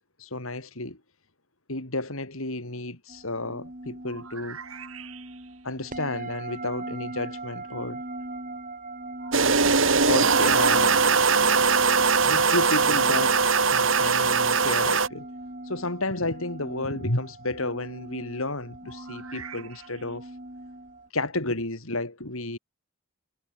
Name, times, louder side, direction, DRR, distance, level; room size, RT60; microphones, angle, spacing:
voice 1, 0.2-1.0 1.7-4.6 5.6-8.0 10.1-11.0 12.2-13.4 13.7-15.3 15.7-20.3 21.1-22.6, left 2 dB, 75° left, 5.1 m, -31 dB
sound 1, 3.1-21.1, right 2 dB, 40° right, 4.4 m, -40 dB
sound 2, 4.0-5.7 9.2-10.4 13.5-14.7 18.8-20.2, right 8 dB, 80° right, 7.4 m, -45 dB
sound 3, 9.3-15.1, right 5 dB, 65° right, 2.7 m, -21 dB
head